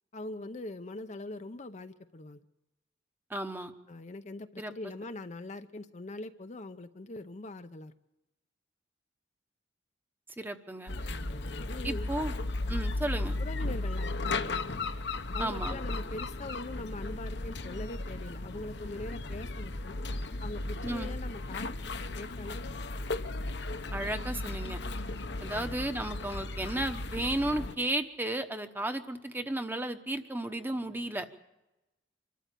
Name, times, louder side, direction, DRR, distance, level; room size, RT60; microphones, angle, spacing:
voice 1, 0.1-2.4 3.9-7.9 11.1-12.1 13.4-14.7 15.3-20.0 20.4-21.9 22.2-22.8 25.5-25.9, left 2 dB, 40° left, 9 dB, 0.7 m, -42 dB
voice 2, 3.3-3.7 4.6-4.7 10.4-10.9 11.8-12.3 12.7-13.4 15.4-15.8 20.8-21.1 23.9-24.8 25.4-31.3, right 1 dB, 10° right, 7 dB, 1.1 m, -34 dB
sound 1, 10.9-27.8, left 2 dB, 65° left, 1.0 m, -35 dB
25.0 x 13.5 x 8.4 m, 0.98 s
head